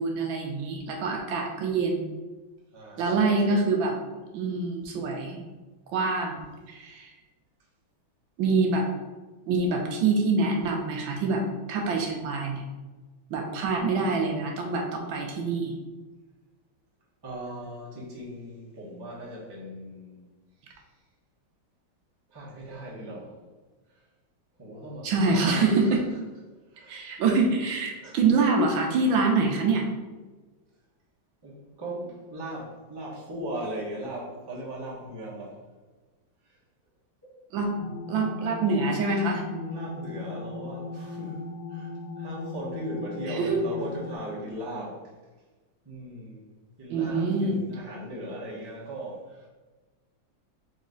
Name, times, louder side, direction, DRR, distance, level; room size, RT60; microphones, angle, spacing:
voice 1, 0.0-2.0 3.0-3.9 4.3-5.4 5.9-6.4 6.7-7.1 8.4-8.9 9.5-11.4 11.7-12.6 13.3-15.8 25.0-26.0 26.9-29.9 37.5-37.7 38.1-39.4 43.3-43.6 46.9-47.6, right 3 dB, 75° right, 1 dB, 1.3 m, -25 dB
voice 2, 2.7-3.6 17.2-20.2 22.3-23.4 23.9-24.0 24.6-26.0 26.7-27.0 28.0-28.2 31.4-35.6 37.8-37.9 39.4-41.4 41.7-45.0 45.8-46.4 46.8-49.5, right 1 dB, 20° right, -5 dB, 0.6 m, -38 dB
sound 1, 37.8-44.2, left 3 dB, 70° left, 1.1 m, -38 dB
4.1 x 3.0 x 3.8 m, 1.3 s
omnidirectional pair, 2.3 m